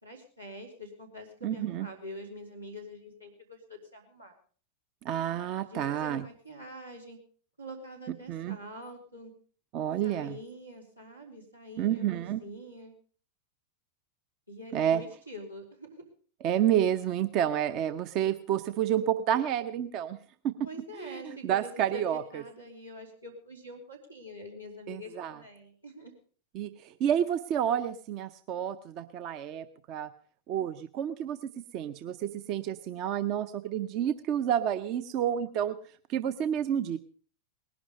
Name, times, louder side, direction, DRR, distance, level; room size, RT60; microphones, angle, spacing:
voice 1, 0.0-4.3 5.6-7.2 7.6-9.3 10.0-12.9 14.5-16.0 20.6-26.1, equal, 90° right, -1 dB, 3.7 m, -45 dB
voice 2, 1.4-1.9 5.0-6.2 8.3-8.6 9.7-10.4 11.8-12.4 14.7-15.0 16.4-20.2 20.4-20.5 21.0-22.4 24.9-25.4 26.5-30.1 30.5-31.4 31.7-35.8 36.1-37.0, right 10 dB, 40° right, 12 dB, 0.7 m, -29 dB
19.5 x 11.5 x 5.2 m, 0.43 s
figure-of-eight pair, 90°, 0 cm